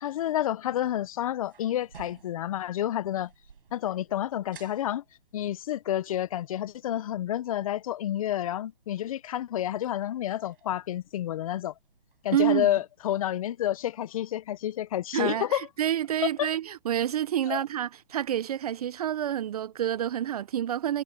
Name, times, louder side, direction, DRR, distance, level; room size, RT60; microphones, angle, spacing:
voice 1, 0.0-3.3 3.7-5.0 5.3-11.7 12.2-15.7 16.2-16.5 17.5-17.6, left 12 dB, 35° left, 1.1 m, -29 dB
sound 1, 0.8-12.4, right 6 dB, 65° right, 7.9 m, -57 dB
voice 2, 12.3-12.7 15.1-21.0, right 11 dB, 40° right, 0.9 m, -28 dB
hypercardioid pair, 150°, 29 cm